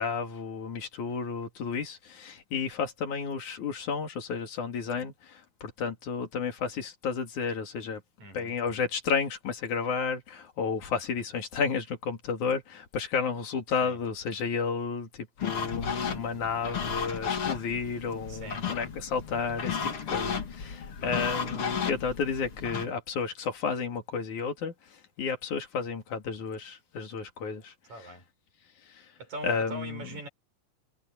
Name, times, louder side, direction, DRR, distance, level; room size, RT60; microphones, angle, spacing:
voice 1, 0.0-8.0 8.3-28.1 28.9-29.1 29.4-30.2, left 5 dB, 90° left, 4.0 m, -32 dB
voice 2, 8.2-8.5 13.8-14.0 18.3-18.7 27.9-28.3 29.2-30.3, right 1 dB, 75° right, 7.5 m, -41 dB
sound 1, 15.4-22.9, left 6 dB, 50° left, 3.1 m, -34 dB
omnidirectional pair, 3.3 m